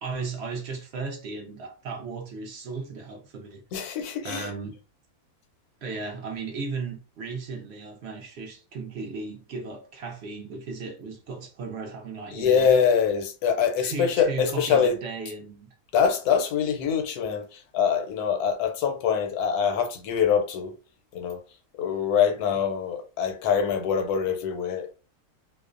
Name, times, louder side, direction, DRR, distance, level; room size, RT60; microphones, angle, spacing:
voice 1, 0.0-3.6 4.2-4.8 5.8-12.7 13.8-15.7, right 4 dB, 65° right, 0.6 m, -36 dB
voice 2, 3.7-4.5 12.3-15.0 15.9-20.7 21.1-21.4 21.8-24.9, left 7 dB, 80° left, 1.1 m, -24 dB
2.5 x 2.0 x 2.4 m
omnidirectional pair, 1.6 m